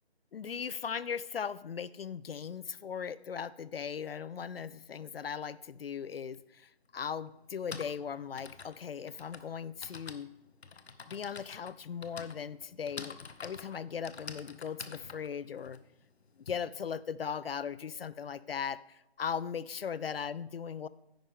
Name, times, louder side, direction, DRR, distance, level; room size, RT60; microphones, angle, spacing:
voice 1, 0.3-10.3 11.1-15.8 16.4-20.9, left 7 dB, 65° left, 18 dB, 0.5 m, -38 dB
Typing, 6.3-6.4 7.4-16.5, left 5 dB, 85° left, 1.0 m, -47 dB
10.5 x 9.0 x 3.7 m, 0.89 s
hypercardioid pair, 170°, 31 cm